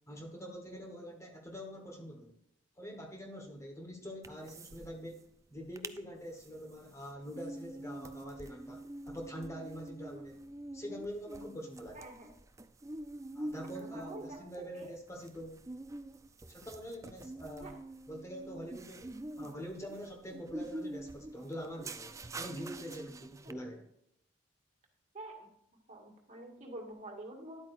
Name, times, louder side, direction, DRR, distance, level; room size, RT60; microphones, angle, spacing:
voice 1, 0.1-2.4 2.8-5.2 5.5-10.4 10.7-12.0 13.3-15.6 16.5-17.7 18.1-23.9, equal, 15° left, 2 dB, 1.2 m, -45 dB
sound 1, 4.2-4.9 5.1-5.2 5.6-6.0 6.4-23.5, right 1 dB, 15° right, 0.4 m, -45 dB
voice 2, 11.9-12.3 13.6-14.5 14.7-14.9 17.6-17.7 25.1-25.5 25.9-27.6, right 1 dB, 35° right, 1 dB, 2.0 m, -47 dB
11.0 x 8.4 x 2.5 m, 0.75 s
head